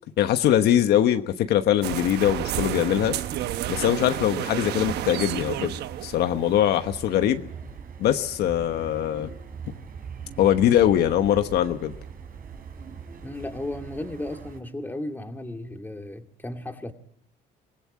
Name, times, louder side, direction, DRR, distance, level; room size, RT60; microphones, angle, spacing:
voice 1, 0.2-3.2 3.7-7.4 8.0-9.3 10.4-11.9, left 11 dB, 75° left, 8 dB, 1.2 m, -22 dB
Seagull Show, 1.8-6.9, right 12 dB, 75° right, 1.1 m, -31 dB
sound 1, 4.9-14.6, right 6 dB, 55° right, 4.6 m, -41 dB
voice 2, 13.2-16.9, left 1 dB, 10° left, 5 dB, 2.3 m, -34 dB
24.5 x 18.0 x 8.5 m, 0.73 s
cardioid pair, 110°, 17 cm